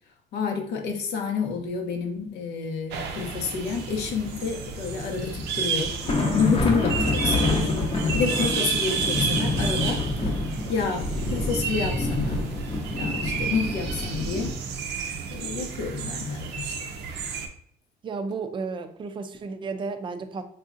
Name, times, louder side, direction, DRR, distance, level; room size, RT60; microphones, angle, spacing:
voice 1, 0.3-5.9 6.3-7.7 8.1-10.0 10.7-12.4 12.9-14.5 15.3-16.7, left 5 dB, 75° left, 3 dB, 0.7 m, -29 dB
sound 1, 2.9-17.5, right 5 dB, 85° right, 0.5 m, -31 dB
sound 2, 4.7-4.9 5.3-5.5 5.8-14.5, left 2 dB, 35° left, 0.7 m, -27 dB
voice 2, 18.0-20.4, right 4 dB, 30° right, 8 dB, 0.4 m, -33 dB
3.4 x 2.7 x 2.4 m, 0.63 s
cardioid pair, 110°, 17 cm